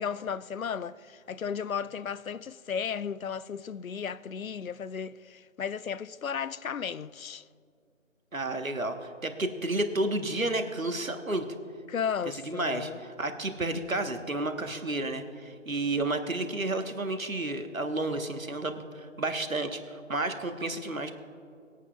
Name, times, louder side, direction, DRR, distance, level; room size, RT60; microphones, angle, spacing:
voice 1, 0.0-7.4 11.9-13.0, left 7 dB, 80° left, 0.5 m, -34 dB
voice 2, 8.3-11.5 12.2-21.1, right 2 dB, 80° right, 1.3 m, -31 dB
23.5 x 8.4 x 2.3 m
figure-of-eight pair, 180°, 40 cm